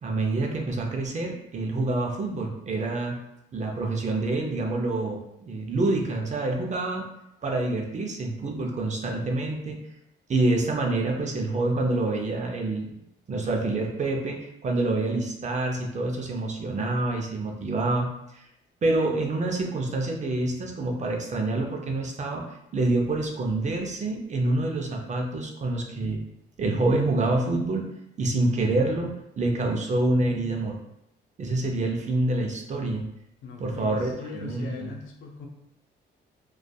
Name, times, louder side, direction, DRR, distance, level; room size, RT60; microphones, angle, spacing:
voice 1, 0.0-3.2 3.5-5.2 5.5-7.1 7.4-9.8 10.3-12.9 13.3-18.4 18.8-22.4 22.7-26.2 26.6-27.9 28.2-30.8 31.4-33.0 33.6-34.9, right 2 dB, 35° right, 1 dB, 0.5 m, -27 dB
voice 2, 33.4-35.5, left 4 dB, 75° left, 1 dB, 0.5 m, -40 dB
2.5 x 2.3 x 2.2 m, 0.80 s
cardioid pair, 90°, 20 cm